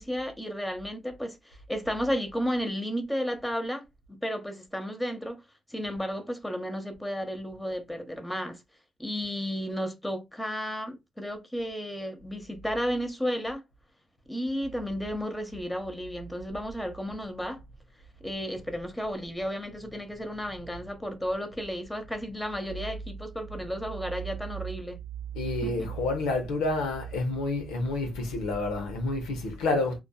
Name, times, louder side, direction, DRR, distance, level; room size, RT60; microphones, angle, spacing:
voice 1, 0.0-5.4 5.7-8.6 9.0-13.6 14.3-17.6 18.2-25.0 25.6-25.9, equal, 10° left, 0.9 m, -33 dB
voice 2, 25.3-30.0, left 2 dB, 85° left, 0.6 m, -29 dB
2.5 x 2.3 x 2.3 m
supercardioid pair, 55°, 0 cm